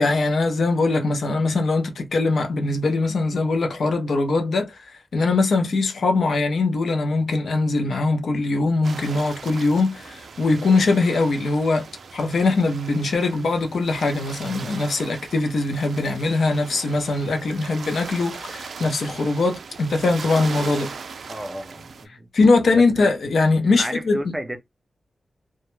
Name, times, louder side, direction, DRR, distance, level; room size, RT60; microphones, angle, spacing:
voice 1, 0.0-4.8 5.1-11.9 12.1-20.9 22.3-24.3, left 3 dB, 75° left, 0.5 m, -21 dB
sound 1, 8.8-22.1, right 5 dB, 75° right, 0.3 m, -39 dB
voice 2, 21.3-22.3 22.7-23.1 23.6-24.6, equal, 10° right, 0.4 m, -32 dB
2.2 x 2.1 x 3.0 m
wide cardioid pair, 160°, 0 cm